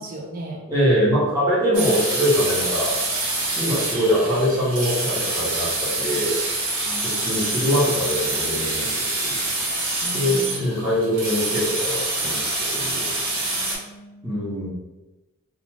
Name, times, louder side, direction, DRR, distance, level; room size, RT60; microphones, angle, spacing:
voice 1, 0.0-0.6 6.9-7.4 10.0-10.6 13.6-14.5, right 2 dB, 40° right, -1 dB, 0.5 m, -38 dB
voice 2, 0.7-2.9 3.6-6.4 7.0-9.4 10.1-12.4 12.7-13.1 14.2-14.7, equal, 15° right, -9 dB, 1.1 m, -23 dB
sound 1, 1.7-13.8, right 2 dB, 85° right, 1.0 m, -26 dB
2.5 x 2.4 x 3.1 m, 1.1 s
head